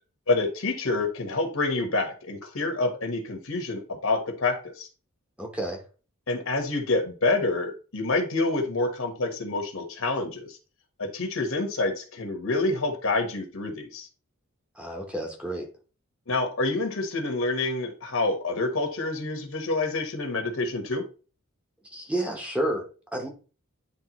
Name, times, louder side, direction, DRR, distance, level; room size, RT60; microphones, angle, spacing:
voice 1, 0.3-4.9 6.3-10.6 11.0-14.1 16.3-21.1, left 2 dB, 70° left, 4 dB, 1.3 m, -27 dB
voice 2, 5.4-5.8 14.8-15.7 21.9-23.3, right 1 dB, 5° right, 1 dB, 0.9 m, -30 dB
9.8 x 3.3 x 3.0 m, 0.37 s
head